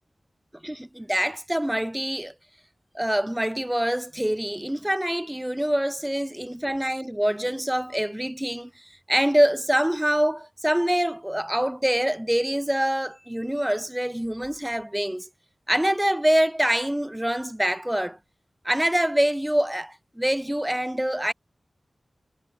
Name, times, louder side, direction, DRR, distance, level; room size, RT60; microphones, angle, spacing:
voice 1, 0.6-2.3 2.9-15.3 15.7-18.2 18.6-21.3, right 1 dB, 10° right, 0.8 m, -25 dB
wide cardioid pair, 75°, 0 cm